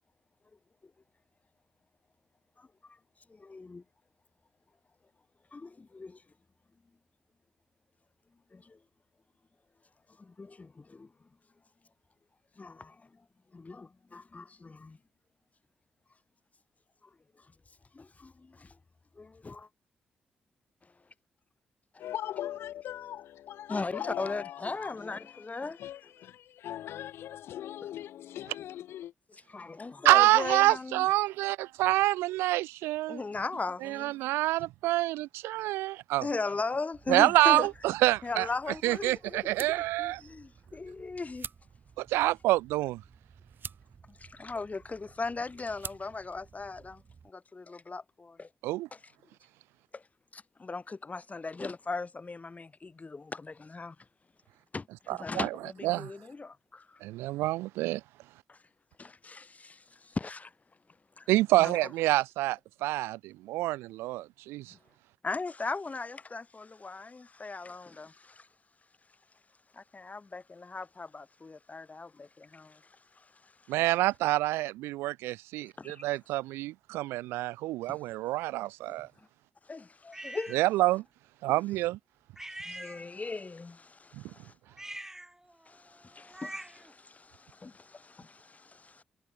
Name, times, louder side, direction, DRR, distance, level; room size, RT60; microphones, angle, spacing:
voice 1, 2.6-3.0 3.3-3.8 5.5-6.2 8.5-8.8 10.1-11.3 12.6-13.3 13.5-15.0 17.0-17.5 17.9-18.8 19.1-19.7 20.8-20.9 21.9-22.0 23.7-25.8 29.3-31.2 33.1-34.2 36.2-41.5 44.1-48.5 48.9-49.1 49.9-50.1 50.3-54.1 54.7-57.0 58.5-58.6 59.0-60.5 61.2-61.3 61.6-62.0 64.7-64.8 65.2-68.5 69.7-74.0 75.8-76.2 77.9-78.1 78.9-79.3 79.6-80.8 81.5-81.9 82.6-84.5 85.7-89.0, left 3 dB, 35° left, 6.0 m, -39 dB
voice 2, 22.0-29.1, left 12 dB, 80° left, 3.4 m, -40 dB
voice 3, 30.0-33.2 33.8-36.3 37.1-38.5 38.8-40.2 42.0-43.0 48.6-48.9 55.1-55.5 55.8-56.1 57.0-58.0 61.3-64.7 73.7-79.1 80.5-81.0 81.4-82.0 84.1-84.2, right 18 dB, 85° right, 0.3 m, -27 dB
sound 1, 36.9-47.3, right 6 dB, 55° right, 5.6 m, -50 dB
sound 2, 80.1-80.6 82.4-83.4 84.7-86.9, right 1 dB, 10° right, 1.8 m, -44 dB
hypercardioid pair, 40°, 4 cm